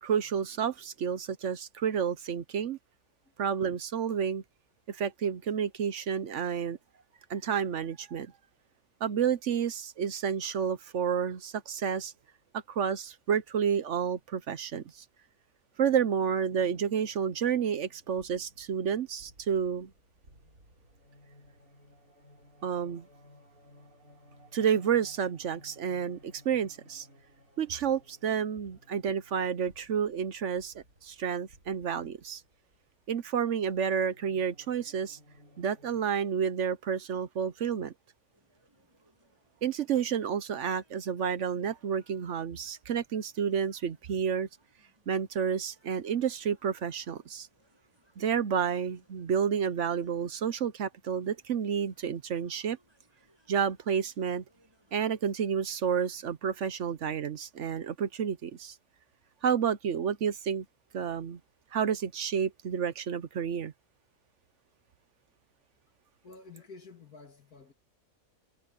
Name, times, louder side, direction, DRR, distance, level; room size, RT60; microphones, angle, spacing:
voice 1, 0.0-2.8 3.4-4.4 4.9-6.8 7.3-8.3 9.0-12.1 12.7-15.0 15.8-19.9 22.6-23.1 24.5-27.1 27.6-32.4 33.1-35.2 35.6-37.9 39.6-44.5 45.1-47.5 48.2-52.8 53.5-54.4 54.9-58.8 59.4-60.6 60.9-61.4 61.7-63.7, right 7 dB, 60° right, 1.0 m, -30 dB
sound 1, 16.5-36.0, equal, 80° right, 7.0 m, -59 dB
sound 2, 38.3-56.3, equal, 15° right, 7.9 m, -69 dB
voice 2, 66.2-67.7, left 4 dB, 85° left, 2.9 m, -50 dB
omnidirectional pair, 1.5 m